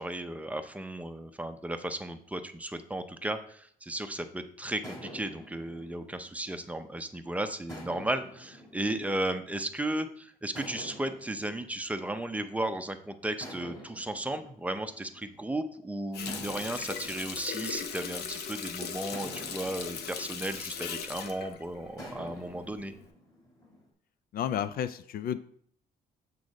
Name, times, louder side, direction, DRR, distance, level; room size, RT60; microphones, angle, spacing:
voice 1, 0.0-22.9, right 1 dB, 10° right, 7 dB, 0.6 m, -35 dB
sound 1, 4.8-7.1 7.7-9.9 10.5-12.8 13.4-15.7 16.3-18.5 19.1-21.4 22.0-23.8, equal, 25° left, 2.6 m, -48 dB
Water tap faucet, 16.1-22.5 22.9-23.1, left 6 dB, 80° left, 0.8 m, -38 dB
voice 2, 24.3-25.4, left 9 dB, 65° left, 13 dB, 0.4 m, -31 dB
8.0 x 3.8 x 5.3 m, 0.63 s
cardioid pair, 125°, 16 cm